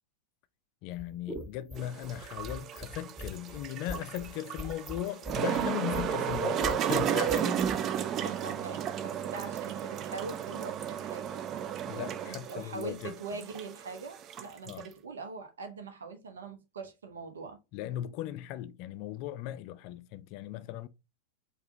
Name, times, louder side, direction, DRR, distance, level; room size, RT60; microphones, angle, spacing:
voice 1, 0.8-7.7 11.8-13.4 14.7-14.9 17.7-20.9, left 13 dB, 45° left, 0.4 m, -38 dB
sound 1, 0.9-7.8, left 1 dB, 10° right, 0.8 m, -42 dB
sound 2, 1.8-14.9, right 9 dB, 30° right, 0.4 m, -33 dB
voice 2, 8.2-11.3 12.3-17.6, right 4 dB, 70° right, 0.9 m, -42 dB
4.8 x 2.5 x 3.7 m
figure-of-eight pair, 90°, 0 cm